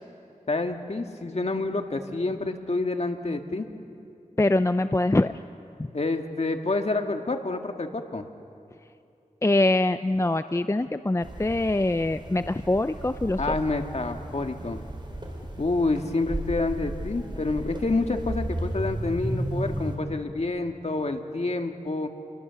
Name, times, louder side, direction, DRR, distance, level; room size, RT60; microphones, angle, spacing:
voice 1, 0.5-3.7 5.9-8.2 13.4-14.8 15.6-22.1, left 3 dB, 55° left, 4 dB, 1.9 m, -28 dB
voice 2, 4.4-5.3 5.8-5.9 9.4-13.5, left 2 dB, 20° left, 11 dB, 0.5 m, -24 dB
sound 1, 11.2-20.0, right 1 dB, 35° right, 4.2 m, -34 dB
29.0 x 22.5 x 7.1 m, 2.6 s
wide cardioid pair, 50°, 14 cm